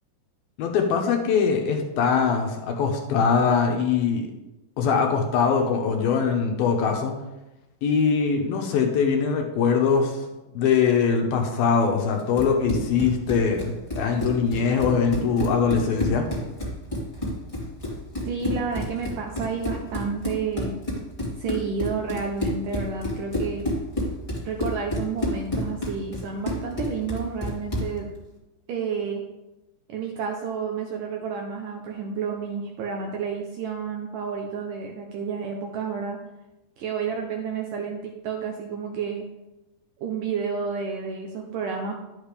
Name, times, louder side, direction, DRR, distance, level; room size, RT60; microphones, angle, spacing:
voice 1, 0.6-4.3 4.8-7.1 7.8-10.2 10.5-16.3, left 6 dB, 70° left, 3 dB, 2.6 m, -22 dB
Run, 12.2-28.0, left 1 dB, 15° left, 1.2 m, -30 dB
voice 2, 18.3-20.7 21.4-23.7 24.4-28.1 28.7-29.2 29.9-36.2 36.8-39.3 40.0-41.9, right 6 dB, 75° right, 1 dB, 2.0 m, -30 dB
12.0 x 8.2 x 3.4 m, 0.98 s
omnidirectional pair, 4.9 m